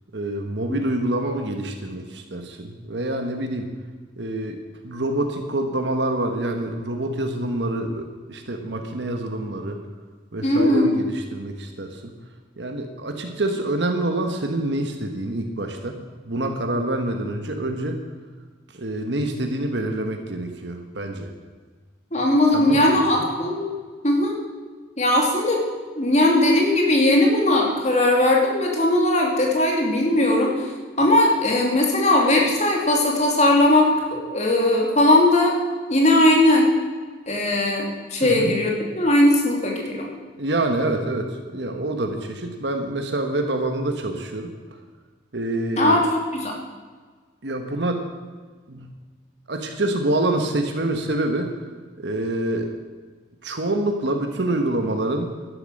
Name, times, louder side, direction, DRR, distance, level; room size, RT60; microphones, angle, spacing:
voice 1, 0.1-3.7 4.2-9.8 10.3-12.1 12.6-16.0 16.2-18.0 18.7-21.3 22.5-22.8 23.1-23.2 38.2-38.6 40.4-44.5 45.3-46.0 47.4-48.0 48.7-48.9 49.5-51.5 52.0-52.7 53.4-55.3, right 1 dB, 65° right, 4 dB, 1.3 m, -26 dB
voice 2, 10.4-10.9 22.1-23.6 24.0-24.3 25.0-25.6 25.9-30.7 31.0-35.5 35.9-36.7 37.3-40.1 45.8-46.5, left 1 dB, 35° left, 0 dB, 2.7 m, -19 dB
12.0 x 11.0 x 6.5 m, 1.4 s
head